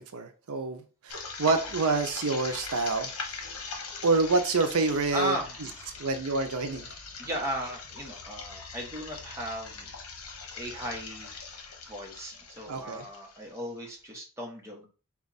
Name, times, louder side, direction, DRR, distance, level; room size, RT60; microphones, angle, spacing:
voice 1, 0.1-3.1 4.0-5.4 6.0-6.9 12.7-13.0, right 3 dB, 80° right, 0.6 m, -27 dB
sound 1, 1.1-13.9, left 4 dB, 80° left, 0.9 m, -42 dB
voice 2, 5.1-6.0 7.2-9.9 10.5-11.5 11.9-14.9, equal, 15° right, 1.0 m, -36 dB
4.3 x 2.4 x 4.0 m
head